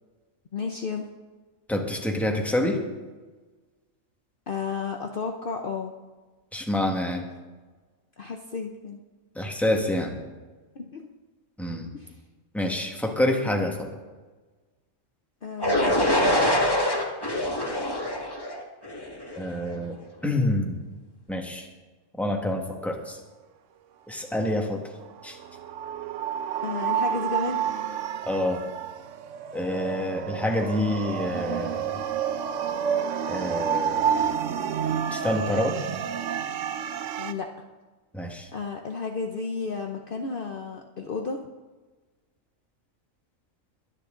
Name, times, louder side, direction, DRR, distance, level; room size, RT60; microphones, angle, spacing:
voice 1, 0.5-1.1 4.5-5.9 8.2-9.0 10.7-11.1 11.9-12.2 15.4-15.9 16.2-16.4 26.6-27.6 37.2-37.7 38.5-41.4, left 4 dB, 45° left, 3 dB, 1.0 m, -32 dB
voice 2, 1.7-2.8 6.5-7.2 9.3-10.2 11.6-11.9 12.5-13.9 19.3-19.9 20.2-20.8 21.3-21.7 22.2-23.2 24.1-24.8 25.2-25.4 28.2-28.6 29.5-31.9 33.3-34.3 35.1-35.8 38.1-38.5, left 1 dB, ahead, 1 dB, 1.6 m, -27 dB
sound 1, 15.6-19.5, left 1 dB, 20° left, 1.9 m, -24 dB
sound 2, 25.1-37.3, right 8 dB, 75° right, 1.0 m, -29 dB
22.5 x 9.9 x 3.9 m, 1.3 s
omnidirectional pair, 1.4 m